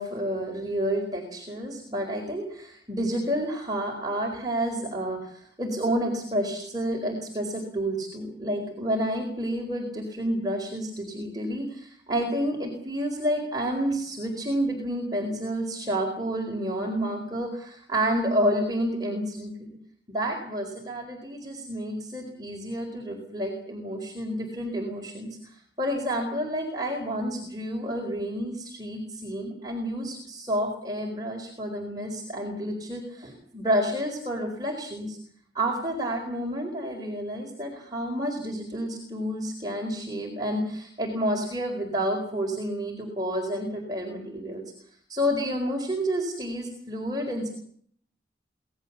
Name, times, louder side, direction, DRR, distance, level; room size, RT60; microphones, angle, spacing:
voice 1, 0.0-19.7 20.1-35.2 35.5-44.6 45.1-47.5, equal, 20° right, 1 dB, 4.4 m, -30 dB
26.0 x 19.0 x 7.3 m, 0.63 s
head